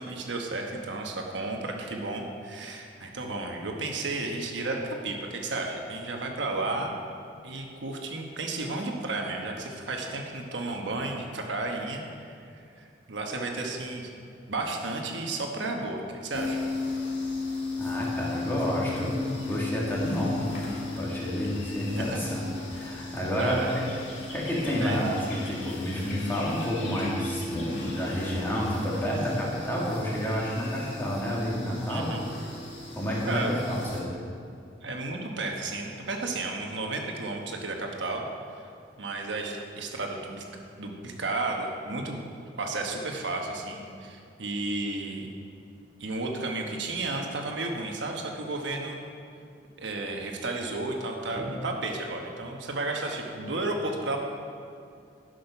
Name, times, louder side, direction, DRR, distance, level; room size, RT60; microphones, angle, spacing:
voice 1, 0.0-6.9 7.4-12.0 13.1-16.7 22.0-22.2 23.4-23.7 24.8-25.1 31.9-32.2 33.3-33.5 34.8-38.3 39.0-40.4 40.8-45.3 46.0-49.0 49.8-54.2, right 2 dB, 80° right, 1 dB, 1.1 m, -33 dB
sound 1, 16.3-34.0, left 3 dB, 75° left, 2.1 m, -36 dB
voice 2, 17.8-23.6 24.3-32.1 33.0-34.1 51.4-51.5, equal, 10° left, -5 dB, 1.9 m, -30 dB
10.5 x 6.5 x 5.7 m, 2.5 s
head